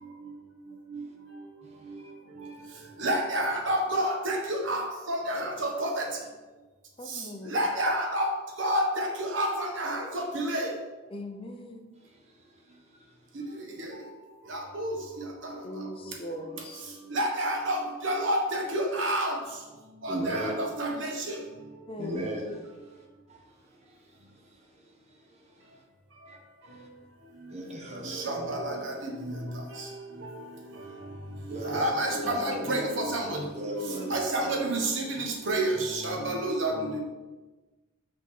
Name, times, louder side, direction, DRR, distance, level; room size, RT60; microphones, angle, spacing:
voice 1, 3.0-6.0 7.5-8.3 8.6-10.7 14.5-14.9 15.4-15.9 17.1-19.4 20.0-21.4 28.0-29.3 29.8-29.9 31.6-33.4 33.9-37.0, right 1 dB, 65° right, 1 dB, 1.2 m, -29 dB
voice 2, 7.0-7.5 11.1-11.8 15.6-16.8 20.1-20.3 21.9-22.3 33.9-34.1, left 1 dB, 25° left, 5 dB, 0.6 m, -40 dB
voice 3, 20.1-20.5 22.0-22.5 26.3-26.4 27.5-28.5 31.5-32.9 33.3-34.1, equal, 30° right, 1 dB, 0.8 m, -35 dB
5.7 x 3.8 x 5.9 m, 1.2 s
head